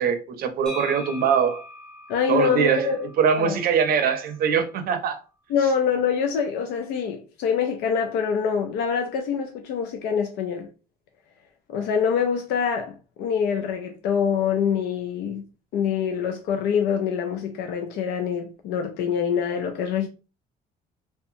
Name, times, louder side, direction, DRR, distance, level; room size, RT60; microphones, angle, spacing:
voice 1, 0.0-1.6 2.3-5.2, right 7 dB, 60° right, 0.6 m, -22 dB
sound 1, 0.7-4.4, left 2 dB, 5° left, 1.0 m, -42 dB
voice 2, 2.1-3.1 3.4-3.6 5.5-10.7 11.7-20.1, left 7 dB, 80° left, 0.4 m, -25 dB
2.7 x 2.1 x 2.5 m
cardioid pair, 110°, 17 cm